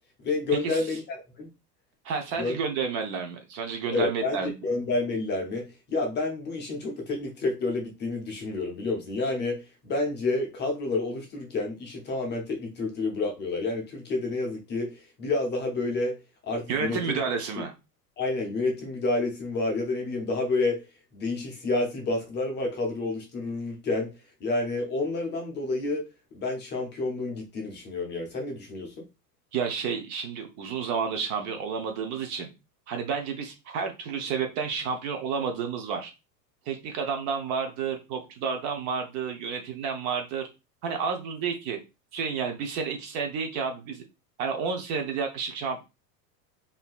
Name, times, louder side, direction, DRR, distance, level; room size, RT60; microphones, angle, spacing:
voice 1, 0.2-1.5 2.4-2.6 3.9-4.4 4.6-16.2 16.4-17.2 18.2-20.8 21.1-24.1 24.4-26.0 26.3-29.1, left 3 dB, 20° left, 0.6 m, -29 dB
voice 2, 2.0-4.5 16.7-17.7 29.5-32.5 32.9-36.1 36.7-40.5 40.8-41.8 42.1-44.0 44.4-45.8, right 6 dB, 35° right, 0.6 m, -30 dB
3.6 x 2.7 x 2.3 m
hypercardioid pair, 120°, 50 cm